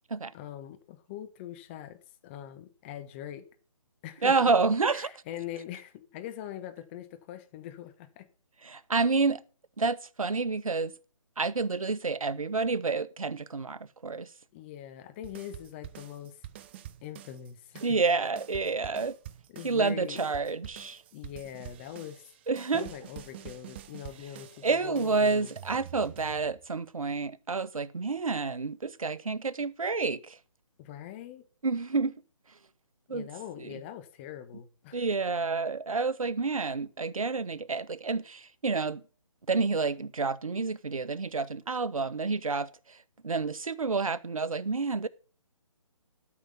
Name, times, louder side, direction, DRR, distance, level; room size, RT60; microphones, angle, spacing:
voice 1, 0.3-3.4 4.0-4.5 4.9-8.3 14.5-16.4 17.0-18.0 19.5-20.3 21.1-22.2 22.7-25.5 30.8-31.4 33.1-35.0, left 11 dB, 20° left, 1.2 m, -42 dB
voice 2, 4.2-5.1 8.6-9.4 9.8-10.9 11.4-14.3 17.8-19.2 19.6-21.0 22.5-22.9 24.6-30.4 31.6-32.1 33.1-33.3 33.6-33.7 34.9-39.0 39.5-43.0 43.2-45.1, right 4 dB, 85° right, 1.1 m, -29 dB
sound 1, 15.2-17.5 17.8-26.8, right 12 dB, 20° right, 0.6 m, -47 dB
13.0 x 6.0 x 7.0 m
figure-of-eight pair, 155°, 17 cm